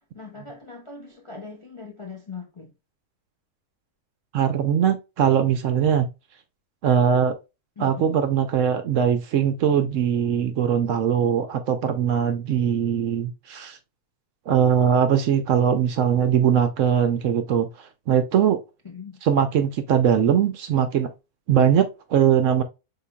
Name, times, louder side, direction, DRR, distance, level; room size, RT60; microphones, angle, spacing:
voice 1, 0.1-2.7 7.8-8.1 18.8-19.2, left 5 dB, 35° left, 0.5 m, -40 dB
voice 2, 4.3-6.1 6.8-7.3 7.8-13.8 14.5-17.7 18.1-18.6 19.2-21.1 21.5-22.6, right 8 dB, 65° right, 0.8 m, -21 dB
5.6 x 3.7 x 2.2 m
omnidirectional pair, 1.6 m